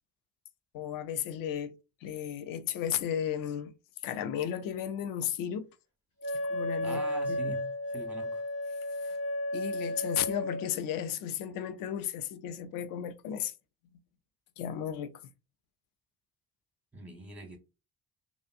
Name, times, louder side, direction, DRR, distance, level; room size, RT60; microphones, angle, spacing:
voice 1, 0.7-1.7 2.0-3.7 4.0-5.7 6.3-7.0 7.3-7.6 9.0-9.2 9.5-13.5 14.6-15.1, left 9 dB, 45° left, 0.5 m, -34 dB
Wind instrument woodwind instrument, 6.2-10.7, left 1 dB, 80° left, 1.1 m, -33 dB
voice 2, 6.8-8.4 16.9-17.6, right 4 dB, 5° right, 0.9 m, -43 dB
2.7 x 2.4 x 2.4 m
figure-of-eight pair, 45°, 47 cm